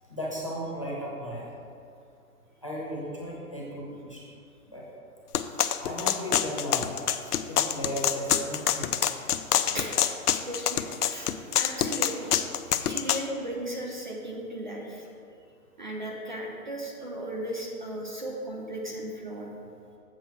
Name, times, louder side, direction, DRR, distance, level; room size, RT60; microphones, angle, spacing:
voice 1, 0.1-1.6 2.6-4.2 4.7-4.8 5.8-9.1, equal, 20° left, -5 dB, 0.7 m, -35 dB
sound 1, 5.3-13.2, left 10 dB, 90° left, 0.6 m, -26 dB
voice 2, 10.3-12.3 12.8-15.1 15.8-19.5, right 1 dB, 30° right, -1 dB, 0.7 m, -36 dB
7.8 x 4.6 x 5.9 m, 2.5 s
hypercardioid pair, 180°, 45 cm